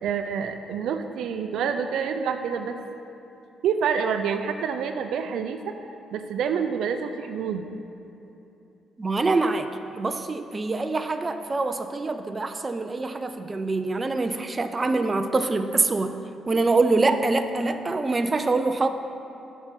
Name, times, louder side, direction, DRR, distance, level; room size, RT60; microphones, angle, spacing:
voice 1, 0.0-2.8 3.6-5.8 6.1-7.7, right 7 dB, 80° right, 7 dB, 0.5 m, -27 dB
voice 2, 9.0-9.7 9.9-16.1 16.5-18.9, right 3 dB, 25° right, 8 dB, 0.5 m, -24 dB
8.7 x 5.6 x 6.1 m, 2.9 s
cardioid pair, 90°, 0 cm